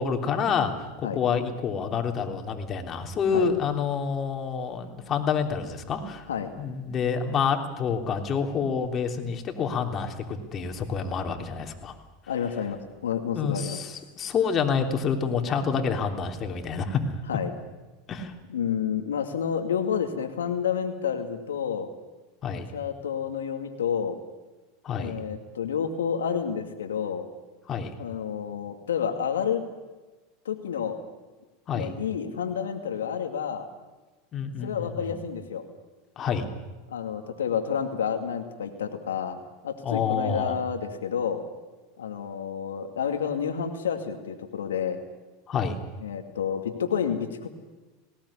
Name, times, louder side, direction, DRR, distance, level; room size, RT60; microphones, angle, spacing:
voice 1, 0.0-6.3 6.6-11.9 13.3-17.0 18.1-18.3 22.4-22.7 24.8-25.2 27.7-27.9 31.7-31.9 34.3-35.2 36.2-36.4 39.8-40.6 45.5-45.8, left 6 dB, 35° left, 4 dB, 3.3 m, -28 dB
voice 2, 12.3-13.8 17.3-17.5 18.5-21.9 22.7-24.2 25.0-27.3 28.0-29.6 30.4-31.0 31.7-33.7 34.6-35.6 36.9-41.4 42.0-45.0 46.0-47.5, left 7 dB, 90° left, 6 dB, 2.3 m, -29 dB
19.0 x 18.0 x 10.0 m, 1.2 s
hypercardioid pair, 100°, 0 cm